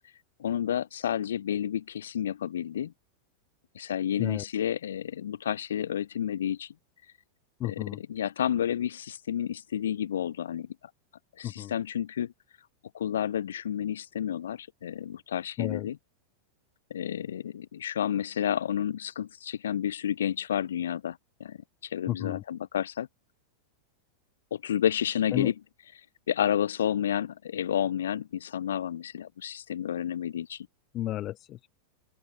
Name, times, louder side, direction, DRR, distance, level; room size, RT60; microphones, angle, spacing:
voice 1, 0.4-2.9 3.7-6.7 7.6-10.7 11.4-12.3 12.9-16.0 16.9-23.1 24.5-25.5 26.3-30.7, left 9 dB, 65° left, 0.8 m, -30 dB
voice 2, 7.6-8.0 11.4-11.7 15.6-15.9 22.1-22.4 25.3-25.5 30.9-31.7, left 14 dB, 35° left, 0.4 m, -32 dB
open air
figure-of-eight pair, 90°, 0 cm